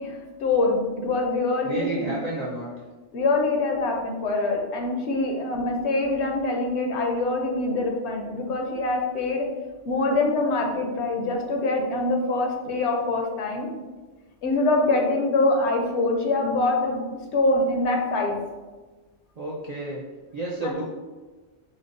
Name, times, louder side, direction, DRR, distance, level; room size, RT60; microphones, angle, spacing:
voice 1, 0.0-2.1 3.1-9.4 9.8-13.7 14.4-17.0 17.3-18.3 20.6-20.7, left 2 dB, 75° left, 2 dB, 0.9 m, -24 dB
voice 2, 1.6-2.7 5.3-5.4 19.4-20.0 20.3-20.8, right 2 dB, 55° right, -6 dB, 0.4 m, -31 dB
5.2 x 2.1 x 2.5 m, 1.3 s
omnidirectional pair, 1.2 m